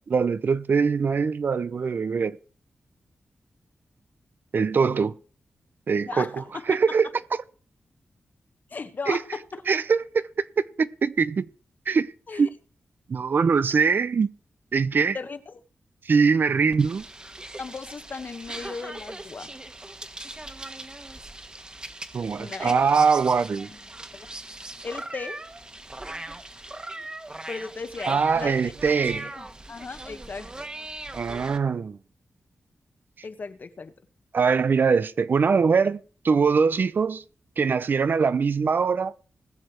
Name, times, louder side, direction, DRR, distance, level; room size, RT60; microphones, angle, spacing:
voice 1, 0.1-2.4 4.5-5.2 5.9-7.1 9.1-9.2 9.7-10.2 10.6-11.5 11.9-12.5 13.1-14.3 14.7-15.2 16.0-17.1 22.1-23.7 28.1-29.3 31.1-32.0 34.3-37.2 37.6-39.2, right 5 dB, 60° right, 0.7 m, -22 dB
voice 2, 6.0-6.8 8.7-9.6 12.3-12.5 15.1-15.6 17.6-19.5 22.4-22.7 24.1-24.3 24.8-25.4 27.5-28.7 29.3-30.7 33.2-33.9, left 4 dB, 50° left, 1.4 m, -36 dB
sound 1, 16.7-31.6, right 2 dB, 20° right, 1.5 m, -40 dB
20.0 x 6.8 x 4.7 m
wide cardioid pair, 85°, 4 cm